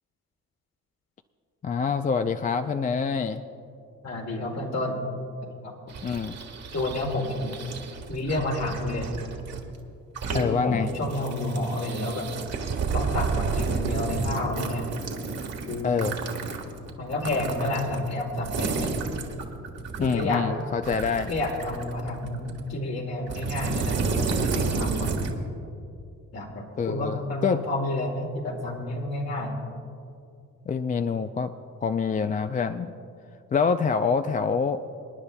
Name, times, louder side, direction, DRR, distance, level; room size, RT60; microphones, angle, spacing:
voice 1, 1.6-3.4 6.0-6.3 10.3-10.9 15.8-16.2 20.0-21.3 26.8-27.6 30.7-31.5 31.8-32.9 33.5-34.8, left 5 dB, 25° left, 8 dB, 0.4 m, -26 dB
voice 2, 4.0-5.0 5.6-5.7 6.7-7.5 8.1-9.1 10.3-12.3 12.9-14.9 15.7-16.0 17.0-18.9 20.0-20.5 21.3-25.1 26.3-29.6, left 1 dB, 55° left, 0 dB, 2.2 m, -30 dB
sound 1, 5.9-9.6 10.0-10.5 10.8-20.3 20.8-22.7 23.3-25.3, right 4 dB, 60° right, 1.5 m, -31 dB
28.0 x 9.9 x 2.2 m, 2.5 s
cardioid pair, 90°, 30 cm